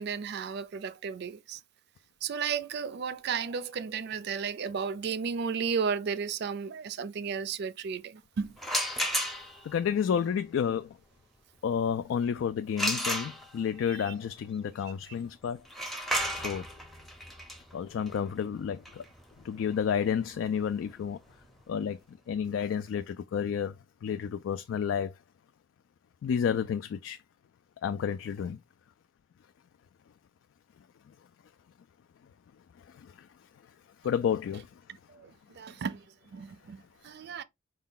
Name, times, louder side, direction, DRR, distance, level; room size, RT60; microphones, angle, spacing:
voice 1, 0.0-1.6 2.2-8.5 13.9-14.1 35.1-35.3 35.6-36.0 36.3-37.4, right 6 dB, 60° right, 0.4 m, -34 dB
sound 1, 8.6-9.7 12.8-13.8 15.7-21.3, equal, ahead, 0.6 m, -34 dB
voice 2, 9.6-10.9 11.6-15.6 16.3-16.6 17.7-19.0 19.4-21.2 21.7-22.0 22.3-23.7 24.0-25.1 26.2-27.2 27.8-28.6 32.9-33.3 34.0-34.7, left 7 dB, 80° left, 0.3 m, -30 dB
4.4 x 2.2 x 3.7 m
head